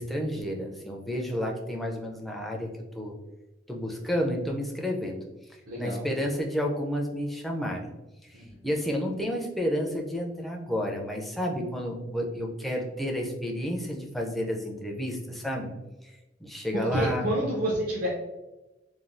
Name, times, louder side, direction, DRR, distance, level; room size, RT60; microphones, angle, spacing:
voice 1, 0.0-3.1 3.7-5.2 5.8-7.9 8.2-8.4 8.6-15.7 16.0-16.1 16.4-17.3, equal, ahead, -1 dB, 0.4 m, -31 dB
voice 2, 5.7-6.0 8.3-8.7 16.7-18.1, right 1 dB, 50° right, -5 dB, 0.6 m, -29 dB
3.2 x 2.2 x 2.5 m, 1.0 s
head